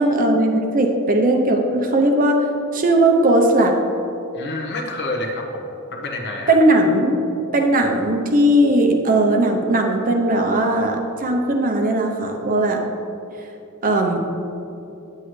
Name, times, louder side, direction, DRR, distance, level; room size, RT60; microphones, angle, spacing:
voice 1, 0.0-2.4 2.7-3.8 6.5-7.2 7.5-12.8 13.8-14.2, right 1 dB, 40° right, 3 dB, 0.7 m, -18 dB
voice 2, 4.3-6.6, left 2 dB, 50° left, 1 dB, 1.0 m, -28 dB
9.2 x 8.0 x 3.2 m, 2.9 s
head